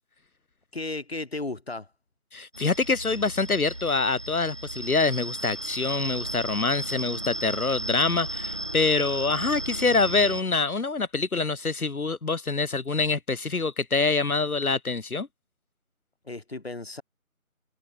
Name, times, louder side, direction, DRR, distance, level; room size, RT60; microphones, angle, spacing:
voice 1, 0.7-1.9 16.3-17.0, left 2 dB, 45° left, 3.8 m, -34 dB
voice 2, 2.3-15.3, left 4 dB, 90° left, 1.2 m, -25 dB
sound 1, 2.5-10.4, right 1 dB, 20° right, 1.5 m, -34 dB
figure-of-eight pair, 170°, 42 cm